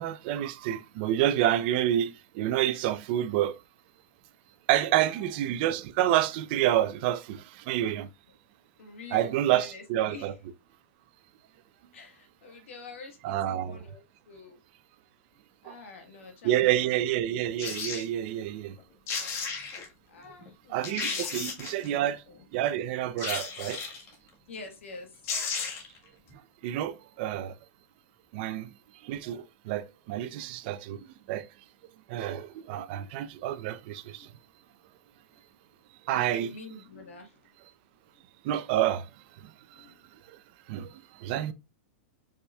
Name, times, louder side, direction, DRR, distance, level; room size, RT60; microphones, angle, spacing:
voice 1, 0.0-3.6 4.7-8.1 9.1-10.3 13.2-13.8 15.6-15.8 16.4-18.8 20.7-22.2 22.5-23.8 26.6-27.6 28.3-28.7 29.0-31.5 32.1-34.3 36.1-36.5 38.4-39.1 39.4-39.9 40.3-40.4 40.7-41.5, right 12 dB, 55° right, 0.6 m, -28 dB
voice 2, 8.8-10.3 11.9-14.6 15.6-17.0 20.1-21.4 21.9-22.4 24.5-25.2 34.0-34.3 36.1-37.4 39.7-39.9, left 3 dB, 85° left, 1.6 m, -47 dB
sound 1, 17.6-18.1 18.8-18.9 19.1-19.9 20.4-20.5 20.8-21.9 23.2-24.1 24.9-25.0 25.2-26.0 26.3-26.4, left 5 dB, 40° left, 1.5 m, -34 dB
4.9 x 4.2 x 2.3 m
hypercardioid pair, 130°, 7 cm